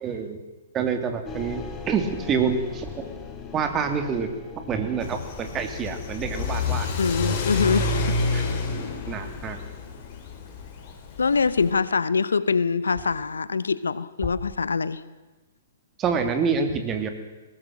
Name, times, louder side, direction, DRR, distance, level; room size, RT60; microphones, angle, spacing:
voice 1, 0.0-0.4 0.7-2.9 3.5-4.3 4.7-6.9 8.3-8.4 9.1-9.6 16.0-17.1, right 6 dB, 25° right, 7 dB, 2.9 m, -27 dB
sound 1, 1.3-11.0, left 5 dB, 20° left, 3.2 m, -42 dB
sound 2, 2.8-3.1 6.1-6.4 8.6-9.0 10.5-10.7 11.5-11.9 12.2-12.3 12.9-13.3 14.1-14.6, left 3 dB, ahead, 7.7 m, -41 dB
Car / Accelerating revving vroom, 5.0-11.7, left 3 dB, 40° left, 4.7 m, -29 dB
voice 2, 7.0-8.6 11.2-15.0, left 5 dB, 75° left, 17 dB, 0.9 m, -24 dB
20.5 x 18.5 x 7.7 m, 1.2 s
figure-of-eight pair, 115°, 0 cm